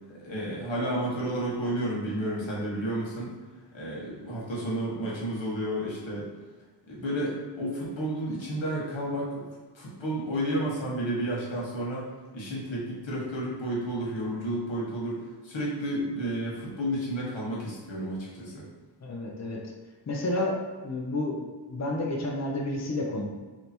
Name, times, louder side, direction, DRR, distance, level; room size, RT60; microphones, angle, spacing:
voice 1, 0.1-3.3 3.7-6.3 6.9-9.4 9.7-12.1 12.3-18.6, right 1 dB, 85° left, -5 dB, 1.4 m, -31 dB
voice 2, 19.0-19.6 20.1-20.6 20.8-23.3, left 2 dB, 35° left, -2 dB, 0.8 m, -30 dB
3.3 x 2.9 x 4.3 m, 1.3 s
cardioid pair, 55°, 44 cm